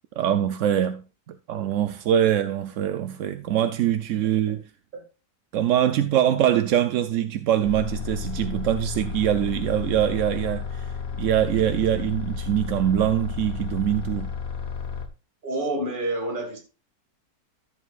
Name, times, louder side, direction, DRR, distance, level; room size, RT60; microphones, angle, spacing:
voice 1, 0.2-4.6 5.5-14.3, right 10 dB, 65° right, 0.8 m, -23 dB
sound 1, 7.6-15.1, left 6 dB, 40° left, 1.3 m, -32 dB
voice 2, 15.4-16.6, right 1 dB, 30° right, 2.2 m, -28 dB
14.0 x 7.4 x 2.4 m
omnidirectional pair, 1.7 m